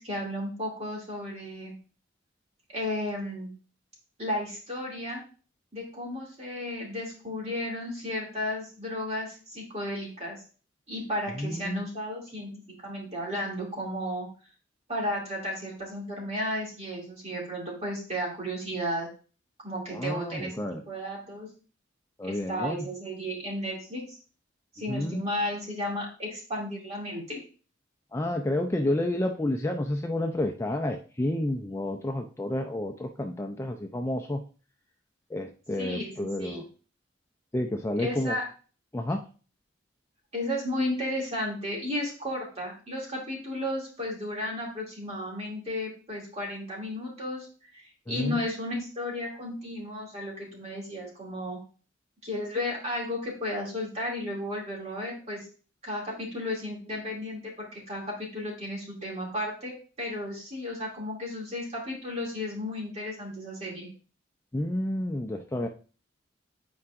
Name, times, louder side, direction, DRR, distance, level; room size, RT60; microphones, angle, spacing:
voice 1, 0.0-1.7 2.7-3.5 4.2-5.2 5.7-10.4 10.9-12.5 12.8-14.3 14.9-19.1 19.6-20.5 20.9-21.5 22.2-24.2 24.7-27.4 35.8-36.6 38.0-38.5 40.3-47.5 47.7-51.6 52.2-55.5 55.8-63.9, left 1 dB, 35° right, -3 dB, 2.4 m, -33 dB
voice 2, 11.4-11.8 19.9-20.8 22.2-22.8 24.9-25.2 28.1-34.4 35.3-36.6 37.5-38.4 38.9-39.2 48.1-48.4 64.5-65.7, left 1 dB, 15° left, 4 dB, 0.4 m, -30 dB
8.4 x 4.7 x 2.5 m, 0.36 s
head